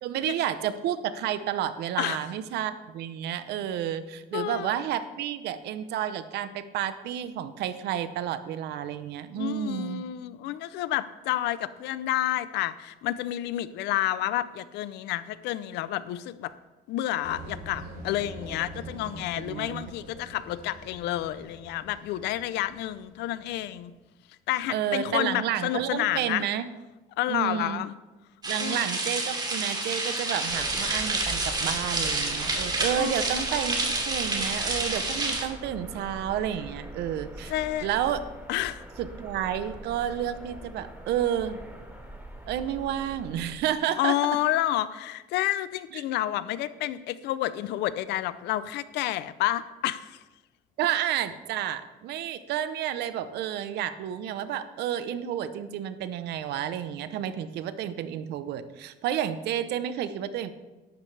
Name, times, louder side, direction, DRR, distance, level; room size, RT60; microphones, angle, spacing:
voice 1, 0.0-10.1 19.4-19.8 24.7-26.6 27.3-27.8 28.5-37.5 37.8-38.2 39.0-41.6 42.5-44.2 45.9-46.0 50.8-60.5, right 10 dB, 80° right, 12 dB, 0.8 m, -30 dB
voice 2, 4.3-4.7 9.3-16.5 16.9-23.9 24.5-26.4 27.2-27.9 28.6-28.9 32.9-33.5 37.5-37.9 38.5-38.8 44.0-50.2, left 14 dB, 85° left, 15 dB, 0.6 m, -30 dB
sound 1, 17.2-23.6, right 1 dB, 60° right, 3.9 m, -44 dB
sound 2, 28.4-35.4, right 2 dB, 25° right, 2.7 m, -29 dB
sound 3, 30.4-43.5, right 1 dB, 10° right, 4.6 m, -42 dB
13.0 x 11.5 x 3.4 m, 1.1 s
cardioid pair, 110°, 17 cm